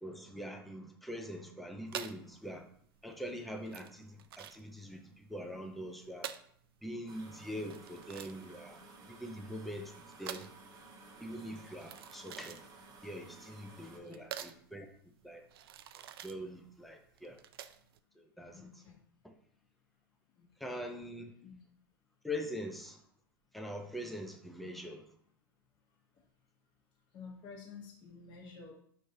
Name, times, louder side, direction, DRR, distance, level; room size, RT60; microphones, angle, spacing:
voice 1, 0.0-2.7 3.0-6.3 6.8-8.8 9.1-9.9 10.2-10.5 11.2-12.6 13.0-14.9 15.2-15.4 16.2-17.4 18.2-18.7 19.2-19.3 20.6-21.3 22.2-23.0 23.5-25.0, equal, ahead, 4 dB, 0.6 m, -43 dB
sound 1, 1.9-18.0, right 10 dB, 75° right, 0.4 m, -48 dB
sound 2, 7.1-14.0, right 3 dB, 35° right, 1.3 m, -55 dB
voice 2, 18.5-19.0 20.4-20.5 21.4-21.5 27.1-28.7, left 5 dB, 40° left, -2 dB, 1.1 m, -50 dB
5.1 x 3.2 x 2.8 m, 0.64 s
hypercardioid pair, 105°, 12 cm